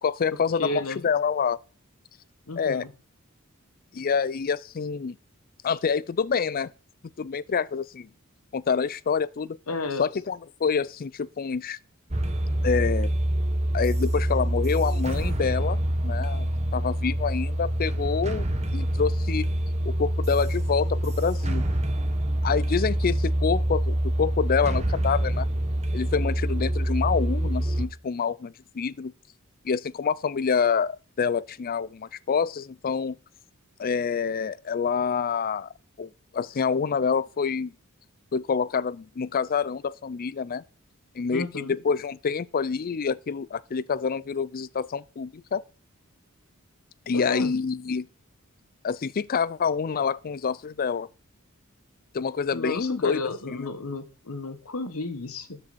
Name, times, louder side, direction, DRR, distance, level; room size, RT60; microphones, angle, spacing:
voice 1, 0.0-1.6 2.6-2.8 3.9-5.2 5.6-6.7 7.2-8.1 8.5-9.6 10.0-11.8 12.6-13.1 13.7-19.5 19.8-21.6 22.4-25.5 25.9-29.1 29.6-33.2 33.8-35.7 36.0-37.7 38.3-40.6 41.1-45.6 47.1-48.1 48.8-51.1 52.1-53.2 53.5-53.7, left 6 dB, 45° left, 0.4 m, -27 dB
voice 2, 0.6-1.0 2.5-2.9 9.7-10.1 41.3-41.7 47.1-47.5 52.5-55.6, left 2 dB, 80° left, 1.3 m, -32 dB
sound 1, 12.1-27.9, right 1 dB, 30° right, 1.4 m, -26 dB
13.0 x 7.7 x 4.1 m
head